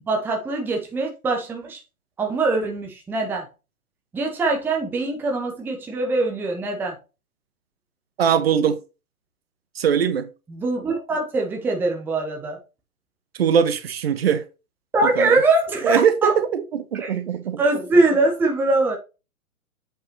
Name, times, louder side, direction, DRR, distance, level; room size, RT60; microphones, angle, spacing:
voice 1, 0.1-1.8 2.2-3.5 4.1-7.0 10.5-12.6 14.9-16.3 16.9-17.2 17.6-19.0, right 2 dB, 5° right, 0.9 m, -22 dB
voice 2, 8.2-8.8 9.7-10.3 13.4-14.4 15.0-15.4 15.8-17.6, right 8 dB, 45° right, 0.9 m, -21 dB
8.0 x 5.3 x 3.0 m
figure-of-eight pair, 125°, 44 cm